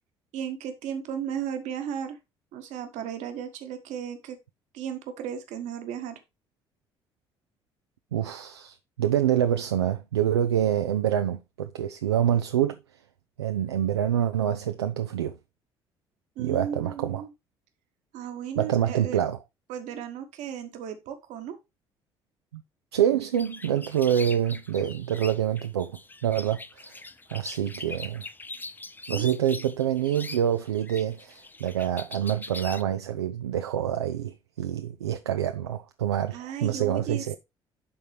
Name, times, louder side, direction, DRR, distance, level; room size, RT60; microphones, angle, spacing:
voice 1, 0.3-2.2 2.5-4.4 4.7-6.2 16.4-17.3 18.1-19.2 19.7-21.6 29.1-29.5 36.3-37.4, right 8 dB, 60° right, 1.2 m, -35 dB
voice 2, 8.1-12.8 13.4-15.4 16.4-17.2 18.6-19.4 22.5-22.6 22.9-27.0 27.3-28.2 29.1-37.4, right 10 dB, 80° right, 0.4 m, -26 dB
sound 1, 23.2-32.8, left 3 dB, 15° left, 0.5 m, -42 dB
11.0 x 3.9 x 3.2 m
figure-of-eight pair, 50°, 13 cm